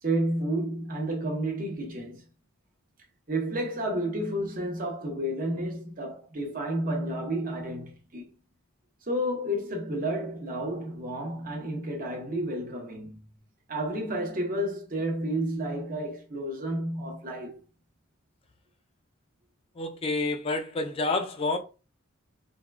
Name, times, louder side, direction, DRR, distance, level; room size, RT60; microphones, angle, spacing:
voice 1, 0.0-2.2 3.3-8.3 9.1-13.3 13.7-17.6, right 1 dB, 40° right, 0.8 m, -31 dB
voice 2, 19.8-21.6, left 3 dB, 25° left, 0.3 m, -28 dB
3.6 x 2.2 x 2.3 m
head